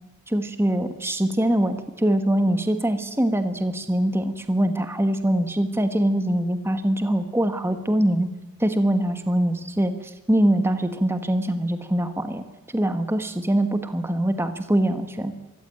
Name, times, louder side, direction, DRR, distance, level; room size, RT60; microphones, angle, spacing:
voice 1, 0.3-8.3 8.6-12.4 12.7-15.3, right 1 dB, 10° right, 9 dB, 1.3 m, -23 dB
23.5 x 14.5 x 8.9 m, 1.1 s
head